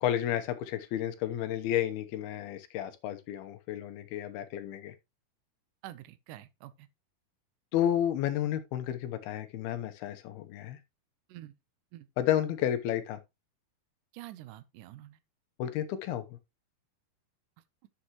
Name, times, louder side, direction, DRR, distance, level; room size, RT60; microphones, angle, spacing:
voice 1, 0.0-4.9 7.7-10.8 12.2-13.2 15.6-16.3, left 11 dB, 80° left, 2.9 m, -31 dB
voice 2, 5.8-6.9 11.3-11.5 11.9-12.1 14.1-15.2, right 14 dB, 70° right, 2.0 m, -47 dB
11.5 x 6.9 x 3.0 m
omnidirectional pair, 4.5 m